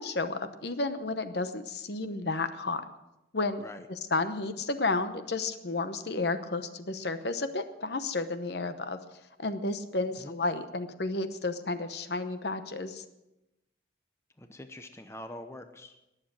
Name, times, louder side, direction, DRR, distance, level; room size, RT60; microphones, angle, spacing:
voice 1, 0.0-2.8 3.3-3.6 4.1-9.0 9.4-13.0, left 3 dB, 60° left, 10 dB, 0.9 m, -32 dB
voice 2, 14.4-16.0, left 1 dB, 15° left, 7 dB, 0.7 m, -44 dB
20.5 x 7.5 x 6.3 m, 0.93 s
head